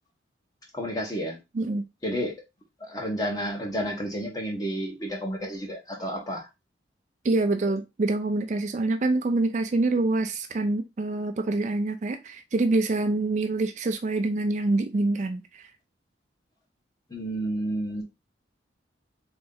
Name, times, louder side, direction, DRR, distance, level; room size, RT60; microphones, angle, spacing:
voice 1, 0.7-1.4 2.0-2.4 2.8-6.5 17.1-18.0, equal, 20° left, 1.1 m, -31 dB
voice 2, 7.2-15.6, right 2 dB, 40° right, 0.3 m, -26 dB
3.9 x 3.0 x 3.7 m
head